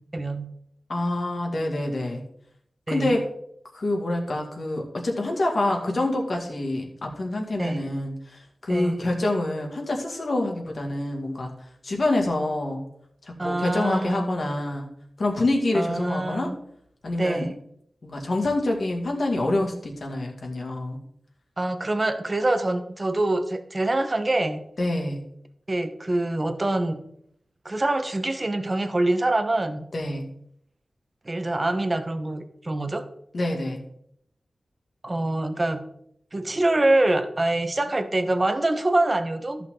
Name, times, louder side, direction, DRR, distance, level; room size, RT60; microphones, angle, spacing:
voice 1, 0.1-0.5 2.9-3.2 7.6-7.9 8.7-9.0 13.4-14.5 15.7-16.6 17.2-17.6 21.6-24.6 25.7-27.0 27.6-29.8 31.2-33.1 35.0-35.8 36.3-39.7, right 2 dB, 30° right, 8 dB, 1.0 m, -25 dB
voice 2, 0.9-2.2 2.9-3.3 3.7-11.5 11.8-12.8 13.4-14.9 15.2-16.5 17.0-17.5 18.0-21.0 24.8-25.2 29.9-30.3 33.3-33.8, left 2 dB, 55° left, 1 dB, 2.2 m, -26 dB
13.5 x 6.0 x 3.8 m, 0.70 s
wide cardioid pair, 100°, 0 cm